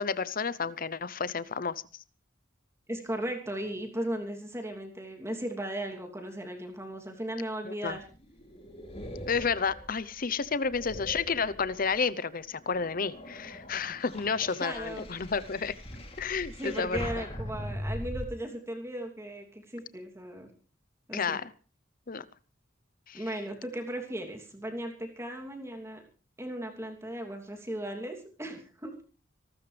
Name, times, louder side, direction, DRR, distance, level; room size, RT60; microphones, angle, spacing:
voice 1, 0.0-1.8 7.6-8.0 9.3-15.7 16.2-17.0 21.1-21.5 22.1-22.2 23.1-23.2, left 5 dB, 45° left, 17 dB, 0.8 m, -31 dB
voice 2, 2.9-8.1 14.6-15.1 16.6-20.5 21.1-21.4 23.1-26.0 26.4-29.0, right 1 dB, 15° right, 3 dB, 2.9 m, -37 dB
sound 1, 7.9-12.1 12.6-18.3, equal, 30° left, 3.1 m, -41 dB
25.5 x 13.0 x 3.4 m, 0.37 s
head